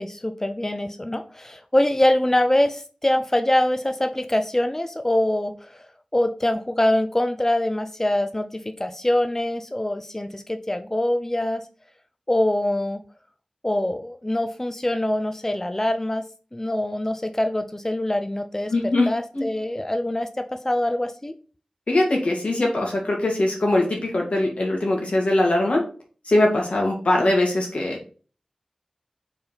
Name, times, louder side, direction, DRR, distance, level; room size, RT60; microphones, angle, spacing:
voice 1, 0.0-11.6 12.3-13.0 13.6-16.2 16.5-18.7 19.1-21.3, left 1 dB, 20° left, 8 dB, 0.5 m, -24 dB
voice 2, 18.7-19.1 19.3-19.4 21.9-25.8 26.3-28.0, left 1 dB, 80° left, 0 dB, 2.0 m, -21 dB
4.6 x 4.1 x 5.1 m, 0.39 s
wide cardioid pair, 60°, 2 cm